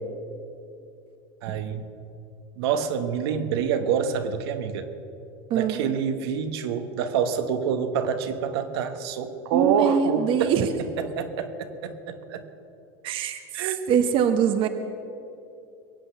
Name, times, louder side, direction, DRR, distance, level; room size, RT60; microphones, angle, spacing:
voice 1, 1.4-1.9 2.6-4.9 5.5-10.5 11.0-12.5 13.5-13.8, right 7 dB, 75° right, 8 dB, 1.3 m, -27 dB
voice 2, 5.5-5.8 9.5-10.7 13.0-14.7, right 8 dB, 40° right, 8 dB, 0.9 m, -23 dB
22.0 x 8.2 x 6.8 m, 2.6 s
supercardioid pair, 130°, 13 cm